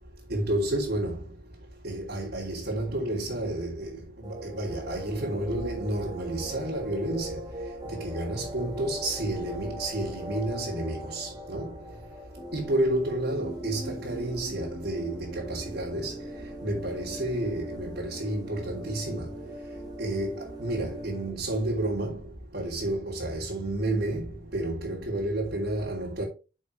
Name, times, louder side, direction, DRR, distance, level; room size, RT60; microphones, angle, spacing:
voice 1, 0.3-1.2 1.8-7.4 7.9-11.7 12.5-16.1 16.6-19.3 20.0-22.2 22.5-26.2, right 1 dB, 60° right, 3.3 m, -30 dB
sound 1, 4.2-21.3, equal, 20° right, 1.8 m, -40 dB
7.3 x 6.3 x 4.7 m
head